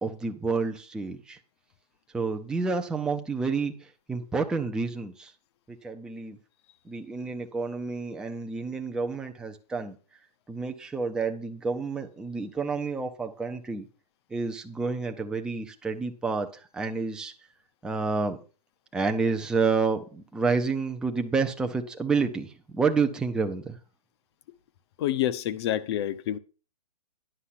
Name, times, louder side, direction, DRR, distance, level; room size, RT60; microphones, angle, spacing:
voice 1, 0.0-1.4 2.1-3.7 4.1-5.3 5.7-6.4 6.9-10.0 10.5-13.9 14.3-17.3 17.8-18.4 18.9-23.8, right 4 dB, 5° right, 0.6 m, -29 dB
voice 2, 25.0-26.4, left 12 dB, 40° left, 0.7 m, -28 dB
10.0 x 5.6 x 5.7 m
hypercardioid pair, 145°, 21 cm